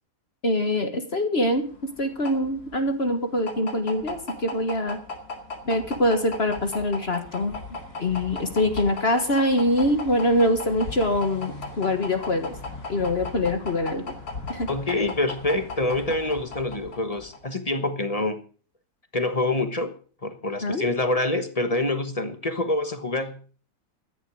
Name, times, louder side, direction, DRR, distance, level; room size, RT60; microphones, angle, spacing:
voice 1, 0.4-1.7 2.0-5.0 5.7-7.6 8.0-12.5 12.9-14.0 14.5-14.7 20.6-20.9, left 1 dB, 40° left, 1.7 m, -24 dB
sound 1, 1.5-17.5, left 3 dB, 75° left, 2.8 m, -37 dB
voice 2, 14.7-18.4 19.1-20.0 20.2-23.4, left 2 dB, 25° left, 1.2 m, -26 dB
14.0 x 10.0 x 6.3 m
omnidirectional pair, 1.7 m